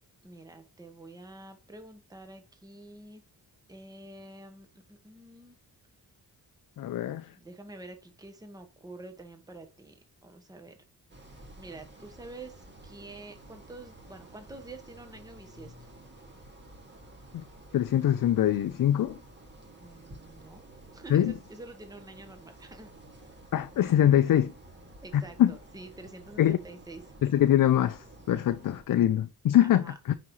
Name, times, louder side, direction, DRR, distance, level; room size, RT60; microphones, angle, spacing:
voice 1, 0.2-3.2 3.7-5.6 7.3-10.8 11.6-15.9 19.8-20.6 20.9-22.9 25.0-27.0 29.6-30.0, right 2 dB, 10° right, 1.1 m, -47 dB
voice 2, 6.8-7.3 17.7-19.2 21.1-21.3 23.5-24.5 25.1-25.5 26.4-26.6 27.2-30.1, left 11 dB, 60° left, 0.5 m, -23 dB
sound 1, 11.1-28.8, right 1 dB, 30° right, 2.2 m, -51 dB
9.5 x 5.1 x 3.1 m
cardioid pair, 95°, 38 cm